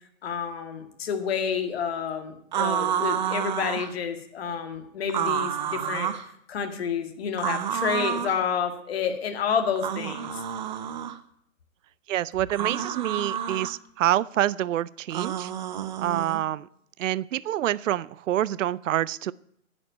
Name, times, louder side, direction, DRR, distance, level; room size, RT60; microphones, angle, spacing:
voice 1, 0.2-6.2 6.5-10.3, left 7 dB, 45° left, 6 dB, 2.1 m, -29 dB
sound 1, 2.5-3.9 5.1-6.3 7.4-8.4 9.8-11.2 12.5-13.7 15.1-16.4, right 9 dB, 35° right, 0.8 m, -29 dB
voice 2, 12.1-15.5 16.0-16.7 17.0-19.3, right 12 dB, 65° right, 21 dB, 0.5 m, -27 dB
10.5 x 7.6 x 9.0 m, 0.71 s
hypercardioid pair, 155°, 41 cm